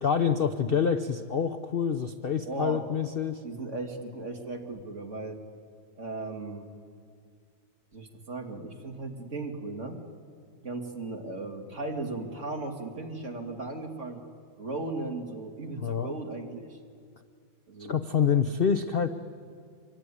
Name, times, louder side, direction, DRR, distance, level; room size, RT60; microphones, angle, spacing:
voice 1, 0.0-3.4 15.7-16.1 17.9-19.1, left 7 dB, 55° left, 9 dB, 0.6 m, -27 dB
voice 2, 2.5-2.8 3.4-5.4 6.0-6.7 7.9-10.0 10.6-14.2 14.6-16.8 17.7-18.0, right 2 dB, 40° right, 2 dB, 2.7 m, -36 dB
26.0 x 22.5 x 9.9 m, 2.1 s
omnidirectional pair, 2.0 m